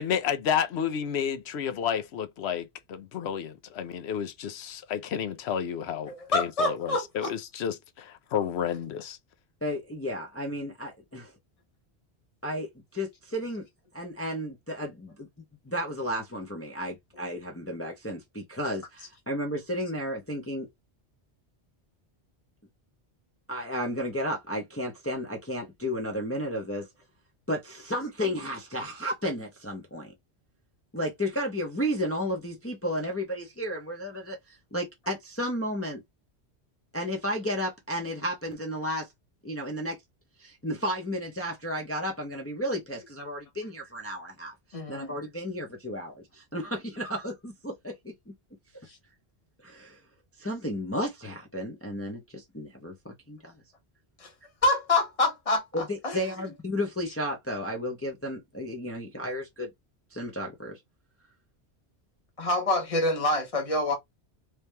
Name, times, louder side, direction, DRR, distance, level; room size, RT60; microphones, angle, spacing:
voice 1, 0.0-9.2, left 8 dB, 80° left, 0.9 m, -31 dB
voice 2, 6.1-7.3 44.7-45.1 54.2-54.3 54.6-56.2 62.4-63.9, left 2 dB, 35° left, 1.3 m, -26 dB
voice 3, 9.6-11.3 12.4-13.7 13.9-15.3 15.7-20.7 23.5-26.9 27.5-30.1 30.9-36.0 36.9-39.1 39.4-40.0 40.4-48.3 49.6-50.0 50.4-53.5 55.7-59.7 60.1-60.8, equal, 15° left, 0.7 m, -33 dB
3.3 x 2.8 x 3.3 m
omnidirectional pair, 1.1 m